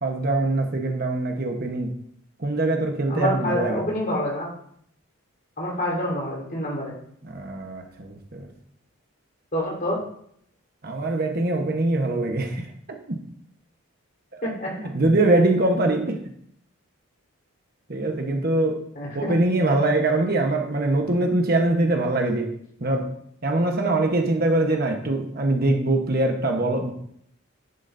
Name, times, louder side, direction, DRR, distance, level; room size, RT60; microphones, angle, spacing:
voice 1, 0.0-2.0 2.4-3.8 7.2-8.5 10.8-12.7 13.1-13.2 14.8-16.2 17.9-18.8 19.1-22.5 22.8-23.1 23.4-26.9, right 2 dB, 45° right, 3 dB, 1.2 m, -23 dB
voice 2, 3.1-4.5 5.6-6.9 9.5-10.0 14.4-14.8 19.0-19.3, left 1 dB, 40° left, -3 dB, 4.0 m, -27 dB
11.0 x 11.0 x 2.7 m, 0.68 s
head